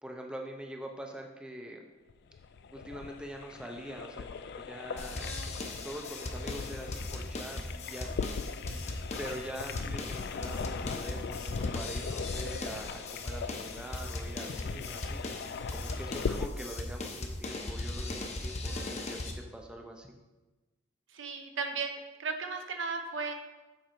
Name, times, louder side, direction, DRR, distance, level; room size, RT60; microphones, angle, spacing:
voice 1, 0.0-1.9 2.7-5.4 5.8-8.1 9.2-15.2 15.7-19.2 19.5-20.2, right 1 dB, 5° right, 2 dB, 0.5 m, -44 dB
sound 1, 2.1-16.5, left 5 dB, 50° left, 0.3 m, -39 dB
sound 2, 5.0-19.3, left 2 dB, 35° left, 0.7 m, -38 dB
voice 2, 5.2-5.6 8.6-8.8 18.7-19.0 21.1-23.3, right 4 dB, 70° right, 5 dB, 0.8 m, -37 dB
7.6 x 4.5 x 4.4 m, 1.1 s
head